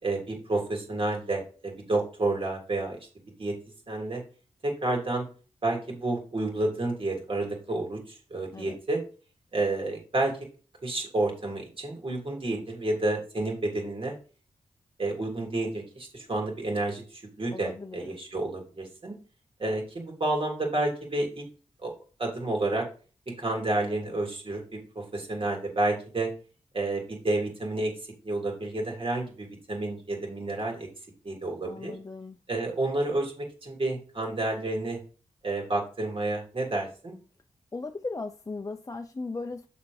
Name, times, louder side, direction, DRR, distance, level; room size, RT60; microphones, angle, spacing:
voice 1, 0.0-3.0 3.4-3.6 3.9-4.2 4.6-5.3 5.6-9.0 9.5-10.3 10.8-14.1 15.0-19.1 19.6-21.4 21.8-21.9 22.2-22.9 23.4-26.3 26.7-28.0 28.2-30.9 31.2-32.0 32.5-35.0 35.4-37.1, right 2 dB, 45° right, 3.3 m, -30 dB
voice 2, 17.5-18.2 31.6-32.4 37.7-39.7, left 3 dB, 25° left, 0.5 m, -37 dB
6.7 x 4.3 x 5.4 m
cardioid pair, 75°, 13 cm